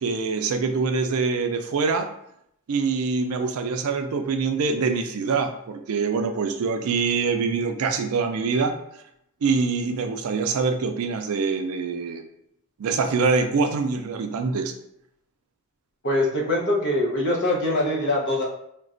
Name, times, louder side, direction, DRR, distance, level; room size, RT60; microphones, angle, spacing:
voice 1, 0.0-2.1 2.7-8.8 9.4-12.2 12.8-14.7, right 4 dB, 75° right, 6 dB, 0.4 m, -24 dB
voice 2, 16.0-18.4, left 1 dB, 55° left, -3 dB, 0.8 m, -23 dB
4.0 x 2.2 x 2.5 m, 0.74 s
head